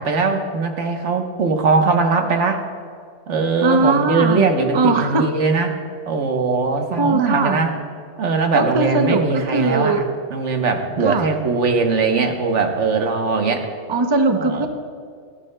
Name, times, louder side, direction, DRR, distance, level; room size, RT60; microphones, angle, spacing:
voice 1, 0.0-2.6 3.3-5.7 6.1-7.7 8.2-10.0 10.3-13.7 14.4-14.7, right 4 dB, 70° right, 4 dB, 1.3 m, -20 dB
voice 2, 3.6-4.5 4.7-5.3 7.0-7.6 8.5-10.0 11.0-11.3 13.9-14.7, right 3 dB, 30° right, 6 dB, 0.5 m, -19 dB
18.5 x 12.5 x 2.2 m, 2.1 s
omnidirectional pair, 1.3 m